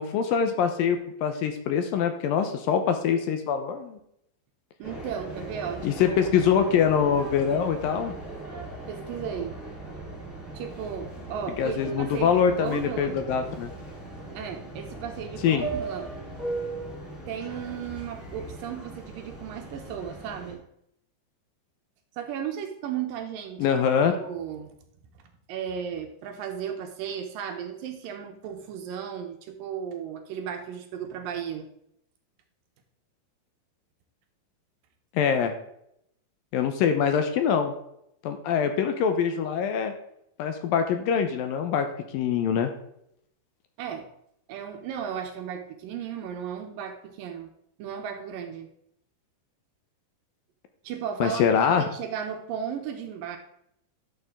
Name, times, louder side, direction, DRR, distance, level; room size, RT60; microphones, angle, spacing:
voice 1, 0.0-4.0 5.8-8.1 11.6-13.7 15.4-15.7 23.6-24.1 35.2-35.5 36.5-37.7 38.2-39.9 40.4-41.9 42.1-42.7 51.2-51.8, left 7 dB, 75° left, 7 dB, 2.4 m, -24 dB
sound 1, 4.8-20.5, right 2 dB, 10° left, 3.6 m, -38 dB
voice 2, 4.8-6.3 8.9-9.6 10.5-13.2 14.3-16.1 17.3-20.6 22.2-23.7 24.1-24.7 25.5-31.7 43.8-44.1 44.5-47.5 47.8-48.7 50.8-53.4, right 8 dB, 75° right, 5 dB, 2.4 m, -35 dB
12.0 x 6.8 x 3.7 m, 0.75 s
omnidirectional pair, 4.4 m